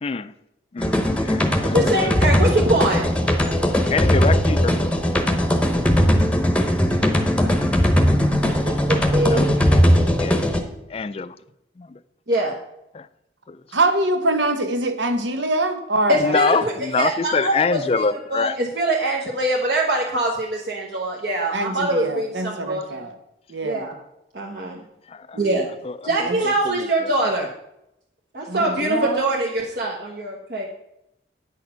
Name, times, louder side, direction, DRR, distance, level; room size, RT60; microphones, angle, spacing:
voice 1, 0.0-0.3 0.7-2.2 3.9-4.8 9.3-9.8 10.2-10.4 10.9-11.4 11.8-12.0 12.9-13.1 13.5-13.6 16.1-18.6 25.1-25.4 25.8-27.1, left 4 dB, 35° left, 14 dB, 0.4 m, -25 dB
sound 1, 0.8-10.6, equal, 5° left, 0.9 m, -19 dB
voice 2, 1.7-3.0 8.4-9.6 12.3-12.5 16.1-18.0 18.3-23.0 23.6-23.9 24.3-24.8 25.4-25.7 26.0-27.5 28.3-30.7, right 1 dB, 60° right, -1 dB, 1.2 m, -23 dB
voice 3, 13.7-16.3 21.5-23.1 23.5-24.0 25.3-25.6 26.1-26.4 28.5-29.4, right 2 dB, 90° right, 8 dB, 1.2 m, -24 dB
9.0 x 6.6 x 5.7 m, 0.84 s
head